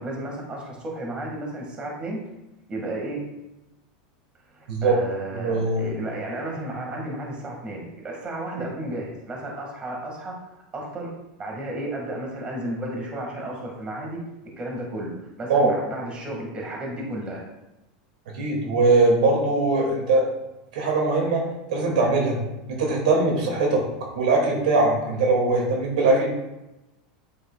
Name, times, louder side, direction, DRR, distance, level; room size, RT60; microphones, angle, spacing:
voice 1, 0.0-2.2 2.7-3.2 4.5-10.3 10.7-11.1 11.4-14.2 14.6-15.1 15.4-17.4, right 1 dB, 25° right, -1 dB, 2.0 m, -33 dB
voice 2, 5.3-5.8 15.5-15.7 18.4-20.3 20.7-21.4 21.7-22.4 22.7-23.8 24.1-26.3, right 3 dB, 80° right, -1 dB, 2.5 m, -21 dB
8.5 x 6.4 x 2.4 m, 0.96 s
supercardioid pair, 130°, 4 cm